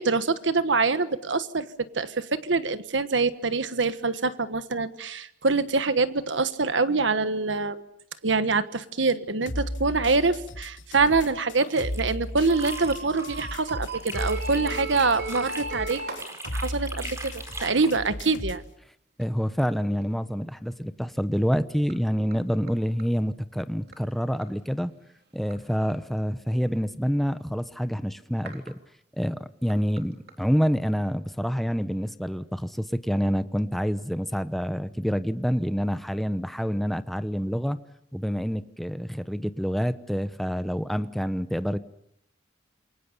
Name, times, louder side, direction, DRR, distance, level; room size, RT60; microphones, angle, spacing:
voice 1, 0.0-7.8 8.2-16.0 16.5-18.6, right 4 dB, 85° right, 12 dB, 1.4 m, -25 dB
sound 1, 9.5-18.7, left 1 dB, 90° left, 2.7 m, -35 dB
sound 2, 11.4-13.5 13.8-18.0, right 2 dB, 15° right, 4.6 m, -40 dB
sound 3, 12.5-16.3 19.2-19.3 20.0-20.1 21.9-22.0 22.3-22.4 22.7-22.8 23.0-23.1 23.9-24.0 24.4-24.5 25.5-25.6 28.5-28.7 29.7-29.8 30.0-30.1 30.3-30.4, right 3 dB, 60° right, 3.8 m, -36 dB
voice 2, 19.2-24.9 25.3-28.8 29.1-37.8 38.1-41.8, equal, ahead, 12 dB, 0.9 m, -27 dB
28.0 x 23.0 x 7.0 m, 0.73 s
head